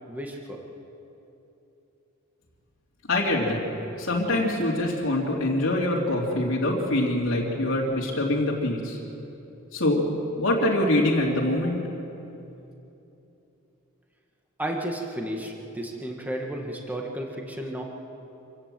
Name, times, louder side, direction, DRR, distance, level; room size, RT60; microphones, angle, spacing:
voice 1, 0.1-0.6 14.6-17.8, right 1 dB, 10° right, 1 dB, 1.8 m, -33 dB
voice 2, 3.1-3.6 4.0-9.0 9.7-10.0 10.4-11.8, left 1 dB, 65° left, -4 dB, 2.9 m, -24 dB
26.0 x 16.5 x 7.7 m, 2.9 s
head